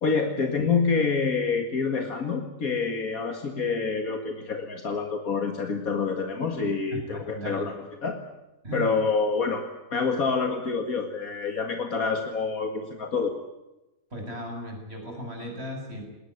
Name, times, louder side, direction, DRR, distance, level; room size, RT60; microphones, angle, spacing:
voice 1, 0.0-7.7 8.0-8.2 8.7-9.6 9.9-13.3, left 5 dB, 85° left, 5 dB, 2.4 m, -27 dB
voice 2, 6.9-7.7 8.6-8.9 14.1-16.0, right 1 dB, 45° right, 2 dB, 7.5 m, -36 dB
21.0 x 19.5 x 9.7 m, 0.96 s
omnidirectional pair, 1.5 m